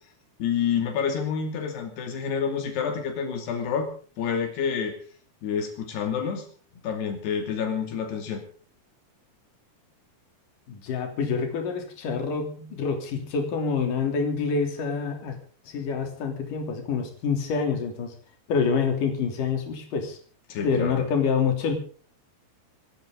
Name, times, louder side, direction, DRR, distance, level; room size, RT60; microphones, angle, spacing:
voice 1, 0.4-3.9 4.2-5.0 5.4-6.5 6.8-8.4 20.5-21.1, left 7 dB, 85° left, 5 dB, 4.7 m, -28 dB
voice 2, 10.7-15.4 15.6-18.1 18.5-20.2 20.6-21.7, left 5 dB, 55° left, 4 dB, 4.6 m, -27 dB
27.5 x 13.5 x 3.9 m, 0.41 s
omnidirectional pair, 4.6 m